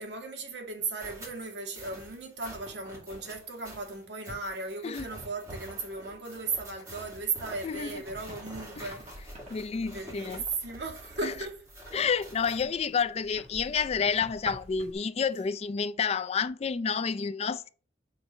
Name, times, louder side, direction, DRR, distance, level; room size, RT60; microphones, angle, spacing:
voice 1, 0.0-9.1 9.9-11.6 11.9-12.0, right 4 dB, 65° right, 1.9 m, -36 dB
sound 1, 1.0-12.7, right 1 dB, 20° right, 3.0 m, -47 dB
sound 2, 7.0-14.9, equal, 35° right, 1.8 m, -48 dB
voice 2, 7.6-8.0 8.8-8.9 9.5-10.4 11.2-11.3 11.9-17.7, left 6 dB, 35° left, 0.3 m, -29 dB
5.2 x 4.2 x 6.0 m
head